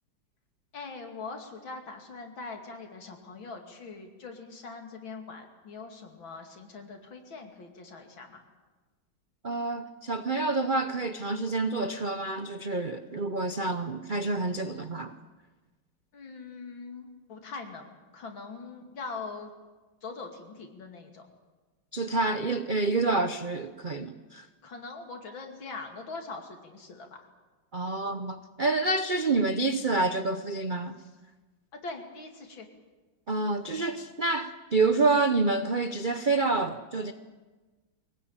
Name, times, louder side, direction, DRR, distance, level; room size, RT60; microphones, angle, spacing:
voice 1, 0.7-8.4 16.1-19.5 20.0-21.3 24.6-27.1 31.7-32.7, left 4 dB, 75° left, 3.3 m, -42 dB
voice 2, 9.4-15.1 21.9-24.5 27.7-31.0 33.3-37.1, right 3 dB, 55° right, 0.5 m, -28 dB
22.5 x 18.5 x 8.9 m
omnidirectional pair, 2.2 m